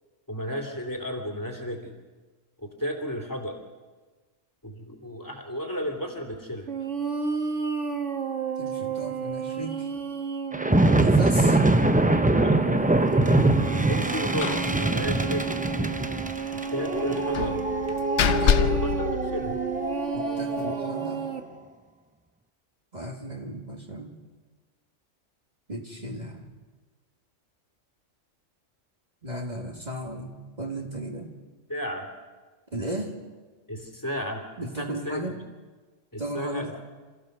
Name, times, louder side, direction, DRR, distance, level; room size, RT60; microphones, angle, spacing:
voice 1, 0.3-1.9 2.6-3.6 4.6-6.7 12.3-12.6 13.7-15.6 16.7-17.6 18.3-19.6 31.7-32.1 33.7-34.4 34.8-35.4 36.1-36.7, equal, 15° left, 2 dB, 3.0 m, -33 dB
sound 1, 6.7-21.4, right 6 dB, 65° right, 1.8 m, -32 dB
voice 2, 8.6-9.9 11.0-11.6 18.4-18.7 20.1-21.3 22.9-24.2 25.7-26.5 29.2-31.3 32.7-33.2 34.6-35.4 36.2-36.7, right 1 dB, 35° right, 0 dB, 2.2 m, -35 dB
sound 2, 10.5-21.1, right 2 dB, 15° right, 0.3 m, -24 dB
Slam, 14.4-14.7 15.0-15.1 15.4-15.6 17.3-19.9, left 8 dB, 65° left, 1.1 m, -26 dB
27.5 x 15.0 x 6.7 m, 1.4 s
omnidirectional pair, 1.3 m